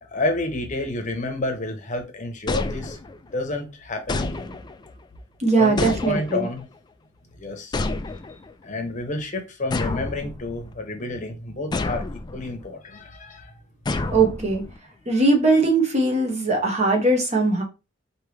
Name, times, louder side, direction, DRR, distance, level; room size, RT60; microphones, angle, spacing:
voice 1, 0.1-3.0 3.3-4.6 5.6-6.7 7.4-7.8 8.6-13.5, left 2 dB, 40° left, 0.9 m, -30 dB
sound 1, 2.5-3.4 4.1-4.9 5.8-6.6 7.7-8.5 9.7-10.7 11.7-12.5 13.9-14.8, left 3 dB, 20° left, 0.3 m, -29 dB
voice 2, 5.4-6.5 14.1-14.6 15.1-17.6, right 3 dB, 35° right, 1.2 m, -20 dB
4.6 x 2.9 x 3.2 m
head